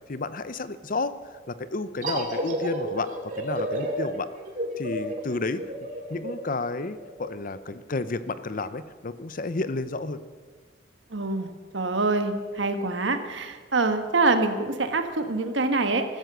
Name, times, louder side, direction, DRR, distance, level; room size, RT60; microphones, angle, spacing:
voice 1, 0.1-4.3 4.8-5.6 6.1-10.2, left 3 dB, 45° left, 13 dB, 0.7 m, -31 dB
sound 1, 2.0-7.3, right 1 dB, 45° right, 2.7 m, -31 dB
voice 2, 11.1-11.5 11.7-16.0, right 3 dB, 70° right, 7 dB, 1.5 m, -25 dB
14.5 x 14.0 x 6.8 m, 1.5 s
head